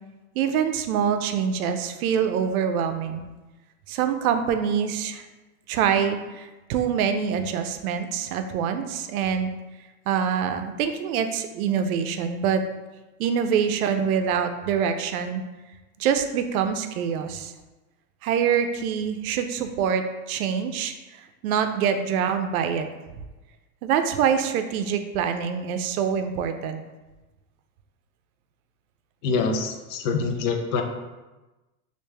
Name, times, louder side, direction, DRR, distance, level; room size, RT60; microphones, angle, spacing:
voice 1, 0.4-3.3 3.9-5.2 5.7-9.5 10.1-12.6 13.2-15.4 16.0-17.5 18.2-22.9 23.8-26.8, right 7 dB, 80° right, 8 dB, 0.5 m, -25 dB
voice 2, 29.2-30.8, left 4 dB, 60° left, 4 dB, 0.6 m, -25 dB
3.2 x 2.5 x 3.3 m, 1.1 s
supercardioid pair, 155°, 43 cm